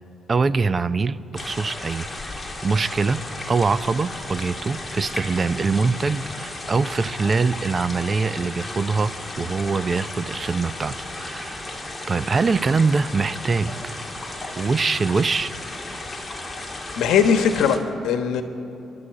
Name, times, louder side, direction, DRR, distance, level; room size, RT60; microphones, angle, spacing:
voice 1, 0.3-3.2 3.5-11.7 12.1-14.0 14.6-15.5, right 4 dB, 35° right, 15 dB, 0.6 m, -23 dB
sound 1, 1.3-17.8, left 2 dB, 20° left, 2.1 m, -34 dB
voice 2, 16.9-18.4, left 7 dB, 80° left, 7 dB, 1.3 m, -20 dB
29.5 x 12.0 x 7.7 m, 2.9 s
cardioid pair, 90°, 0 cm